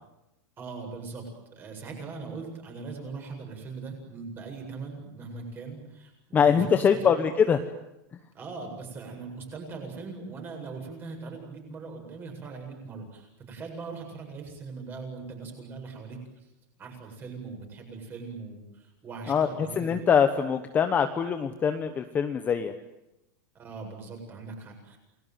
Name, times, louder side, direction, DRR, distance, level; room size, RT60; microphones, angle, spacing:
voice 1, 0.6-7.2 8.3-16.5 16.8-19.9 23.5-25.0, right 4 dB, 20° right, 3 dB, 7.9 m, -40 dB
voice 2, 6.3-7.6 19.3-22.7, left 7 dB, 15° left, 8 dB, 1.1 m, -23 dB
29.0 x 21.5 x 9.4 m, 0.88 s
supercardioid pair, 170°, 11 cm